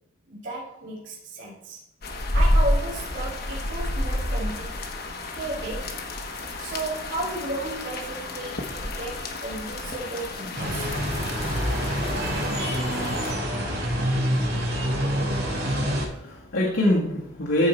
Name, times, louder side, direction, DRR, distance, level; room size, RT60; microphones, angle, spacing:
voice 1, 0.3-1.8 2.3-4.8 5.3-6.0 6.6-10.9, right 2 dB, 60° right, -8 dB, 3.3 m, -34 dB
sound 1, 2.0-13.3, left 1 dB, 50° left, 1.2 m, -29 dB
sound 2, 10.5-16.0, equal, 85° right, 3.6 m, -26 dB
voice 2, 15.2-15.8 16.1-17.7, left 1 dB, 80° left, -5 dB, 1.9 m, -25 dB
14.0 x 4.8 x 4.5 m, 0.82 s
head